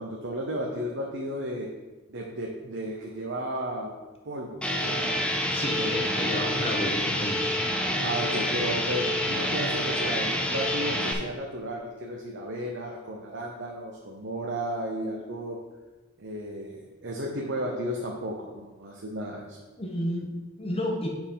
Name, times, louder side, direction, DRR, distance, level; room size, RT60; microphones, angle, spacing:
voice 1, 0.0-1.7 2.1-3.9 4.2-5.3 5.7-6.1 8.0-15.6 16.2-19.6, right 1 dB, 55° right, -1 dB, 0.9 m, -34 dB
sound 1, 4.6-11.1, left 1 dB, 5° left, 0.7 m, -27 dB
voice 2, 5.5-7.6 19.8-21.1, left 1 dB, 25° left, 0 dB, 1.3 m, -31 dB
7.8 x 4.4 x 5.7 m, 1.2 s
head